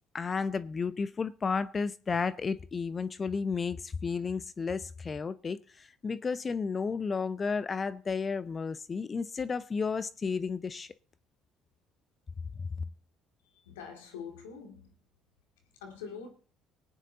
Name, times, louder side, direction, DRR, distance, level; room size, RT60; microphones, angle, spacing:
voice 1, 0.1-10.9 12.6-12.7, left 5 dB, 35° left, 0.7 m, -32 dB
voice 2, 13.7-14.9 15.8-16.3, left 6 dB, 90° left, 2.2 m, -44 dB
19.5 x 9.2 x 4.0 m
hypercardioid pair, 65°, 0 cm